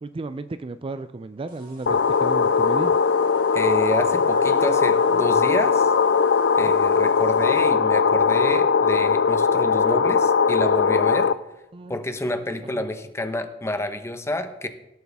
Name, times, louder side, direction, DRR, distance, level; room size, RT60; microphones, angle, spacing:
voice 1, 0.0-3.0 6.6-6.8 11.7-12.0 12.6-12.8, right 3 dB, 30° right, 12 dB, 0.4 m, -34 dB
sound 1, 1.5-7.7, equal, 55° right, 2.8 m, -43 dB
sound 2, 1.9-11.3, left 5 dB, 70° left, 0.5 m, -19 dB
voice 2, 3.5-5.9 6.6-11.3 11.9-14.7, left 1 dB, 15° left, 8 dB, 0.9 m, -28 dB
17.5 x 8.0 x 3.6 m, 0.92 s
head